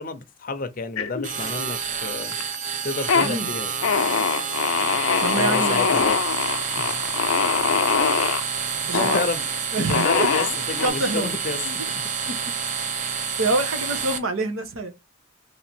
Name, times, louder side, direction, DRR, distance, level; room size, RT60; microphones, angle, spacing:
voice 1, 0.0-2.4 2.8-3.7 5.4-6.2 6.8-7.0 7.6-7.8 8.7-9.5 9.7-11.9, left 3 dB, 40° left, 0.6 m, -30 dB
sound 1, 1.0-1.7 2.0-2.6 2.9-3.3 3.8-8.4 8.9-9.3 9.9-10.9, left 6 dB, 85° left, 0.5 m, -23 dB
sound 2, 1.2-14.2, right 6 dB, 40° right, 0.7 m, -28 dB
voice 2, 3.2-3.5 5.2-5.9 8.9-9.3 9.7-10.3 10.8-11.3 11.6-11.8 13.4-14.9, right 3 dB, 90° right, 1.2 m, -26 dB
3.3 x 2.9 x 4.4 m
head